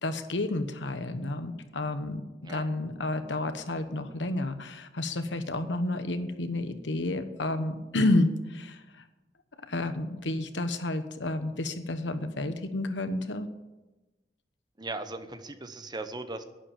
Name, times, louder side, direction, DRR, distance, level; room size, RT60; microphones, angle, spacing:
voice 1, 0.0-9.0 9.7-13.5, left 2 dB, 80° left, 9 dB, 1.2 m, -30 dB
voice 2, 14.8-16.4, right 2 dB, 25° right, 9 dB, 1.0 m, -38 dB
11.0 x 10.0 x 8.9 m, 1.1 s
head